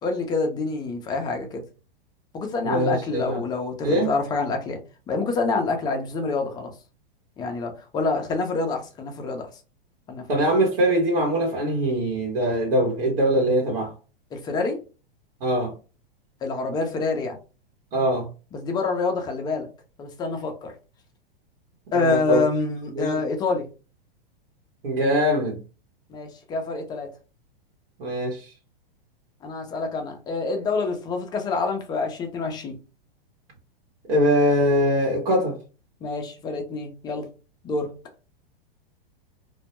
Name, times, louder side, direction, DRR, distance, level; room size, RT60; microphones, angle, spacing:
voice 1, 0.0-1.6 2.3-4.8 5.1-6.7 7.4-9.5 10.1-10.5 14.3-14.8 16.4-17.4 18.5-19.7 20.0-20.7 21.9-23.7 26.1-27.1 29.4-32.7 36.0-37.3 37.6-37.9, left 3 dB, 15° left, 0.3 m, -27 dB
voice 2, 2.6-3.4 3.8-4.1 10.3-13.9 15.4-15.7 17.9-18.3 21.9-22.4 22.9-23.2 24.8-25.6 28.0-28.5 34.1-35.6, equal, 75° right, 1.0 m, -22 dB
2.2 x 2.0 x 2.9 m
hypercardioid pair, 130°, 29 cm